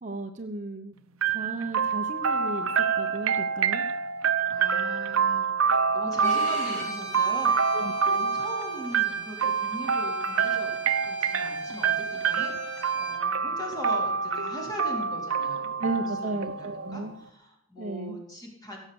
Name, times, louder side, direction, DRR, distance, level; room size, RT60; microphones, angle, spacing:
voice 1, 0.0-0.9 1.3-2.7 3.0-3.8 5.7-5.9 7.7-8.3 15.8-17.2 17.8-18.2, right 2 dB, 35° right, 5 dB, 0.9 m, -35 dB
sound 1, 1.2-17.0, right 6 dB, 75° right, 0.8 m, -27 dB
voice 2, 4.5-10.8 11.1-15.8 16.2-18.8, equal, 20° left, -1 dB, 3.7 m, -40 dB
Bowed string instrument, 6.2-13.2, equal, 35° left, 3.1 m, -41 dB
17.0 x 7.3 x 7.0 m, 0.74 s
head